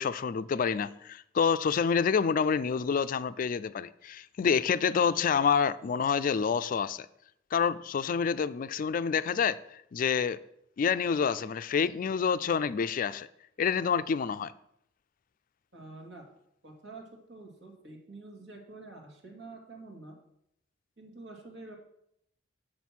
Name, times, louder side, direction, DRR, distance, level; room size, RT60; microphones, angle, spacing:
voice 1, 0.0-7.1 7.5-10.4 10.8-13.3 13.6-14.5, left 6 dB, 50° left, 0.3 m, -28 dB
voice 2, 15.7-16.3 16.6-20.2 21.0-21.8, right 2 dB, 80° right, 2.4 m, -47 dB
7.4 x 6.4 x 6.0 m
head